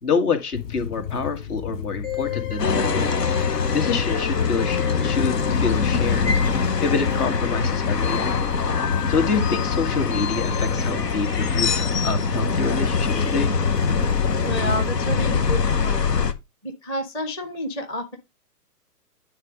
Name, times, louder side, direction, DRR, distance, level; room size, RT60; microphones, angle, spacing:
voice 1, 0.0-3.1 3.5-6.3 6.8-8.3 9.1-13.5, left 4 dB, 70° left, 2.2 m, -27 dB
sound 1, 0.5-14.9, left 8 dB, 50° left, 1.3 m, -34 dB
sound 2, 2.0-12.2, left 9 dB, 25° left, 1.2 m, -34 dB
sound 3, 2.6-16.3, left 5 dB, 85° left, 1.1 m, -23 dB
voice 2, 14.4-16.1 16.6-18.2, equal, 10° left, 0.5 m, -30 dB
9.5 x 3.5 x 5.0 m
figure-of-eight pair, 130°, 48 cm